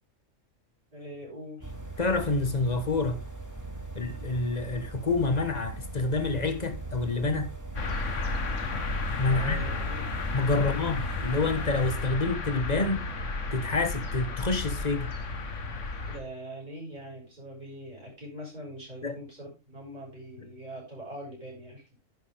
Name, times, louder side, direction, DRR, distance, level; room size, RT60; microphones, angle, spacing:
voice 1, 0.9-1.7 9.3-10.1 10.5-10.8 16.1-21.8, equal, 35° right, 6.6 m, -42 dB
sound 1, 1.6-12.0, right 3 dB, 15° right, 2.2 m, -40 dB
voice 2, 2.0-3.2 3.9-7.5 9.2-9.6 10.3-13.1 13.5-15.1 19.0-19.2, left 3 dB, 30° left, 1.5 m, -28 dB
sound 2, 7.8-16.2, left 3 dB, 65° left, 1.7 m, -33 dB
10.5 x 9.6 x 3.6 m
omnidirectional pair, 1.4 m